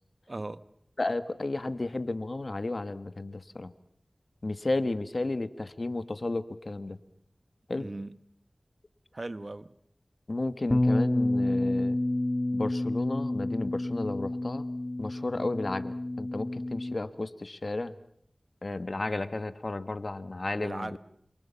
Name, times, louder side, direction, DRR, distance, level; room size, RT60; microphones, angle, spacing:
voice 1, 0.3-0.6 7.7-8.2 9.1-9.7 20.6-21.0, right 2 dB, 50° right, 1.0 m, -38 dB
voice 2, 1.0-3.7 4.4-7.0 7.7-7.9 10.3-12.0 12.5-14.7 15.0-17.9 18.6-21.0, left 2 dB, 60° left, 1.3 m, -33 dB
Bass guitar, 10.7-17.0, left 1 dB, 35° left, 1.3 m, -29 dB
27.5 x 27.5 x 5.7 m
wide cardioid pair, 45°, 0 cm